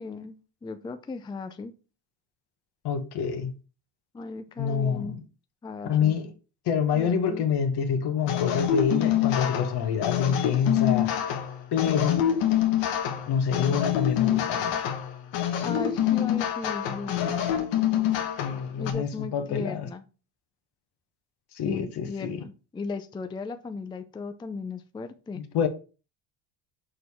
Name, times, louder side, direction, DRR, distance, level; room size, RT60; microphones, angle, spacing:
voice 1, 0.0-1.7 4.1-5.2 5.6-6.1 6.9-7.5 15.6-17.4 18.8-20.0 21.6-25.4, left 4 dB, 10° left, 0.4 m, -36 dB
voice 2, 2.8-3.5 4.6-5.1 5.8-6.3 6.7-11.1 11.7-12.2 13.3-14.7 18.4-19.9 21.5-22.4 25.5-25.7, left 7 dB, 60° left, 1.2 m, -26 dB
sound 1, 8.3-18.9, left 11 dB, 80° left, 1.2 m, -26 dB
6.3 x 4.6 x 3.5 m
cardioid pair, 105°, 43 cm